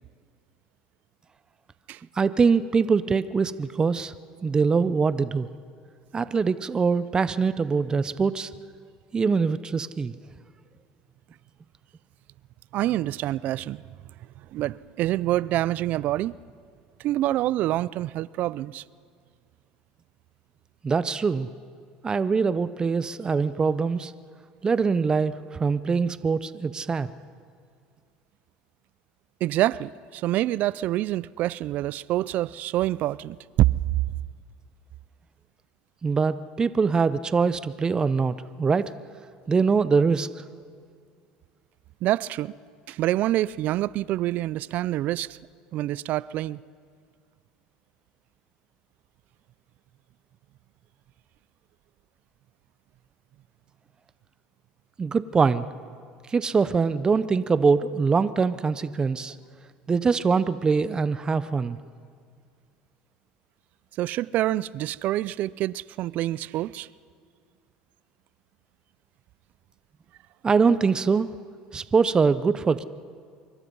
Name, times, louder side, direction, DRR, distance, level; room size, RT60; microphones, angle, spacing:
voice 1, 2.2-4.1 4.4-5.5 6.1-8.5 9.1-10.1 20.8-21.5 22.0-24.1 24.6-27.1 36.0-38.8 39.5-40.3 55.0-55.6 56.3-59.3 59.9-61.8 70.4-71.3 71.7-72.8, right 5 dB, 25° right, 0.7 m, -23 dB
voice 2, 12.7-13.8 14.5-16.3 17.0-18.8 29.4-33.7 42.0-42.5 42.9-45.4 45.7-46.6 64.0-66.9, right 15 dB, 60° right, 0.5 m, -26 dB
25.5 x 23.5 x 5.5 m
supercardioid pair, 100°, 3 cm